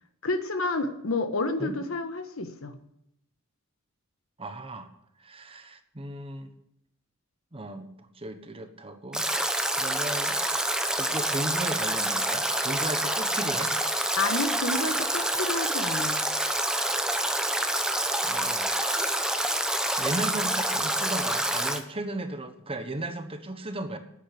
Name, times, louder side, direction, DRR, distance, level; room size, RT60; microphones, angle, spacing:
voice 1, 0.2-2.7 14.2-16.2, left 2 dB, 70° left, 8 dB, 1.4 m, -30 dB
voice 2, 4.4-4.9 5.2-6.5 7.5-7.9 8.2-9.3 9.7-10.4 11.0-13.8 18.2-18.7 20.0-24.0, right 1 dB, 25° right, 8 dB, 1.1 m, -35 dB
Stream / Drip / Trickle dribble, 9.1-21.8, right 1 dB, 5° right, 0.9 m, -27 dB
9.5 x 9.3 x 8.7 m, 0.80 s
head